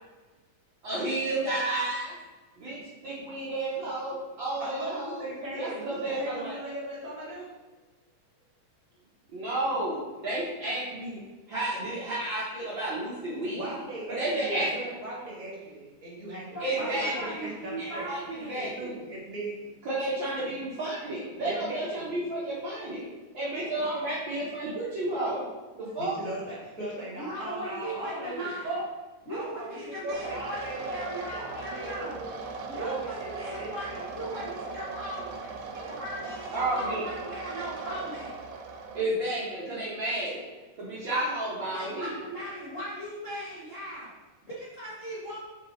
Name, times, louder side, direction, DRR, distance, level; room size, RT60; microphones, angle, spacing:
voice 1, 0.8-2.2 2.6-5.3 5.5-6.5 9.3-13.8 14.2-14.7 16.6-17.4 17.8-18.2 18.5-18.9 19.8-23.1 23.3-25.5 25.7-26.2 36.5-37.0 38.9-40.4 40.8-42.2, right 1 dB, 60° right, -8 dB, 1.2 m, -31 dB
voice 2, 4.6-7.5 13.6-18.1 18.5-19.7 21.4-22.2 26.0-28.9 29.3-31.0 31.3-34.4 35.2-35.3 35.7-36.0, right 1 dB, 30° right, -6 dB, 1.6 m, -38 dB
voice 3, 16.5-18.7 27.2-28.8 29.3-32.2 32.7-35.3 35.7-38.3 41.6-44.1 44.5-45.4, right 1 dB, 75° left, -9 dB, 0.7 m, -38 dB
sound 1, 30.1-39.0, right 4 dB, 75° right, 2.1 m, -39 dB
5.7 x 4.8 x 4.1 m, 1.2 s
omnidirectional pair, 3.9 m